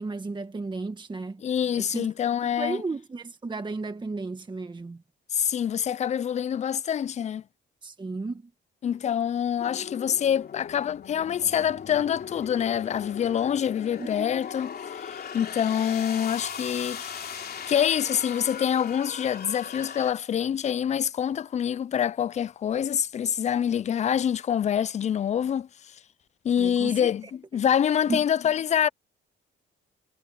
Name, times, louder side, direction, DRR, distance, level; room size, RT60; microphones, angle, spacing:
voice 1, 0.0-1.4 1.8-2.1 2.5-5.0 7.8-8.4 14.0-14.3 26.6-27.1 28.1-28.3, right 3 dB, 25° right, 1.5 m, -33 dB
voice 2, 1.4-2.8 5.3-7.4 8.8-17.3 17.7-25.7 26.4-28.9, left 9 dB, 35° left, 0.4 m, -26 dB
sound 1, 9.6-20.1, left 7 dB, 50° left, 3.1 m, -38 dB
cardioid pair, 90°, 20 cm